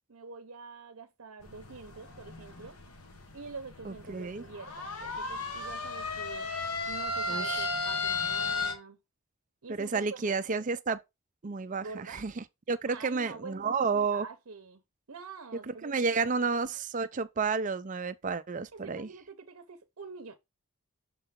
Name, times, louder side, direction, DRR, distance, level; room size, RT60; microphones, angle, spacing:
voice 1, 0.1-2.8 3.3-6.5 6.9-9.0 9.6-10.4 11.8-12.2 12.8-14.8 15.1-16.2 18.7-20.4, right 4 dB, 70° right, 0.7 m, -46 dB
sound 1, 1.4-8.7, left 3 dB, 80° left, 1.4 m, -35 dB
voice 2, 3.9-4.4 7.3-7.7 9.7-11.0 11.4-14.3 15.8-19.1, right 4 dB, 35° right, 0.4 m, -31 dB
6.9 x 4.0 x 3.6 m
head